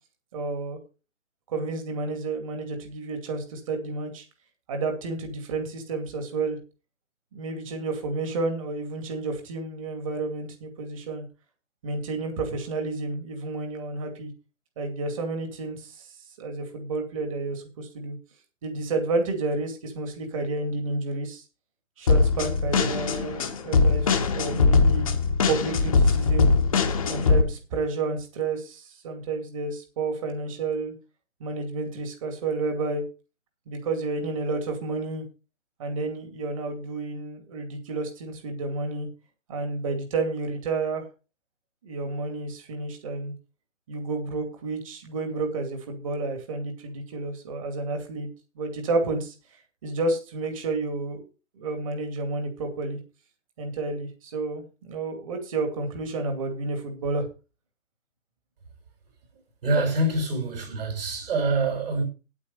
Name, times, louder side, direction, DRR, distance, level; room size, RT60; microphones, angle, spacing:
voice 1, 0.3-0.8 1.5-4.3 4.7-6.6 7.3-11.2 11.8-14.3 14.8-18.2 18.6-21.4 22.0-25.1 25.5-26.5 27.1-30.9 31.4-33.0 33.7-35.2 35.8-39.1 39.5-41.0 41.8-43.3 43.9-48.3 48.6-49.3 49.8-51.2 51.5-53.0 53.6-57.3, right 3 dB, 25° right, 2.4 m, -30 dB
sound 1, 22.1-27.4, left 4 dB, 25° left, 1.2 m, -21 dB
voice 2, 59.6-62.0, right 2 dB, 45° right, 5.2 m, -25 dB
9.3 x 8.6 x 5.3 m
hypercardioid pair, 165°, 39 cm